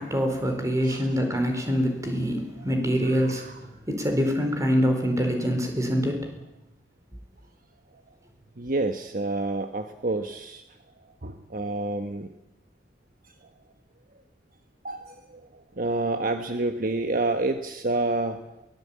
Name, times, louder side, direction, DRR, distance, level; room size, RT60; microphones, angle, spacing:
voice 1, 0.0-6.3, equal, 20° right, 5 dB, 4.4 m, -25 dB
voice 2, 3.0-3.5 8.6-10.6 11.2-12.3 14.8-18.7, right 2 dB, 50° right, 7 dB, 1.3 m, -29 dB
22.5 x 18.5 x 8.6 m, 0.91 s
head